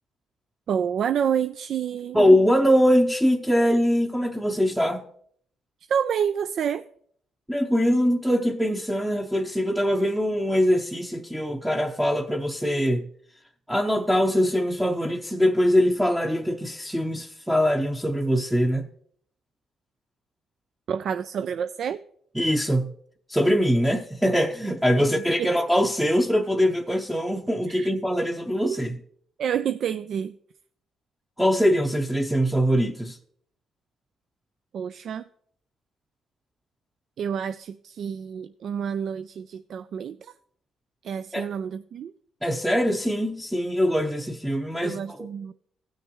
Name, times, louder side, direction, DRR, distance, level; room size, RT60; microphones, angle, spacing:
voice 1, 0.7-2.2 5.9-6.9 20.9-22.0 24.9-25.0 25.4-25.5 27.7-27.9 28.6-28.8 29.4-30.4 34.7-35.2 37.2-40.3 41.0-42.1 44.8-45.5, right 8 dB, 65° right, 0.3 m, -28 dB
voice 2, 2.1-5.1 7.5-13.1 13.7-18.9 22.4-22.9 23.3-28.9 31.4-33.2 41.3-41.5 42.4-45.3, equal, 5° right, 0.7 m, -22 dB
16.0 x 6.4 x 3.0 m
cardioid pair, 90°, 0 cm